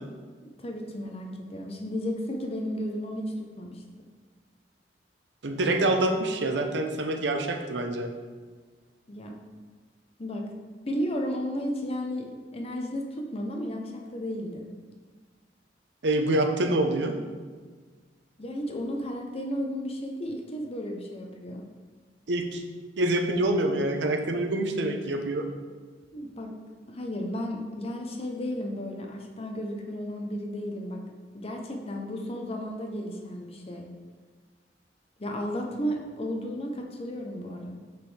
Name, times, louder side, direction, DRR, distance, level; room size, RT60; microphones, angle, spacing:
voice 1, 0.4-3.8 9.1-9.4 10.2-10.5 10.8-14.7 18.4-21.6 26.1-26.5 26.9-31.0 31.3-33.9 35.2-37.7, equal, 35° left, 2 dB, 0.7 m, -33 dB
voice 2, 5.4-8.1 16.0-17.1 22.3-22.6 23.0-25.5, right 1 dB, 85° right, 5 dB, 0.7 m, -26 dB
6.0 x 5.5 x 3.3 m, 1.4 s
head